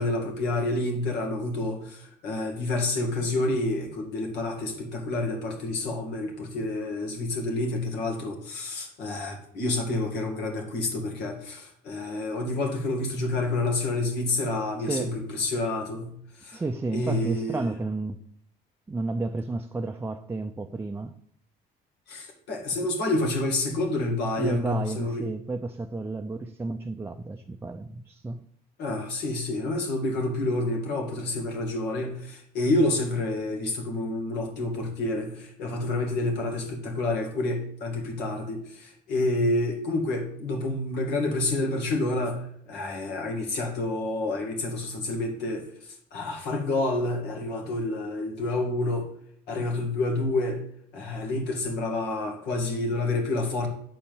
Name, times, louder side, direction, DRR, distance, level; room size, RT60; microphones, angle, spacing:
voice 1, 0.0-16.6 16.9-17.7 22.1-25.2 28.8-45.6 46.1-49.1 49.5-50.6 50.9-53.7, left 2 dB, 80° left, 2.2 m, -28 dB
voice 2, 14.8-15.1 16.5-18.2 18.9-21.1 24.4-28.4, right 3 dB, 15° right, 0.5 m, -32 dB
8.5 x 4.3 x 7.1 m
cardioid pair, 110°, 17 cm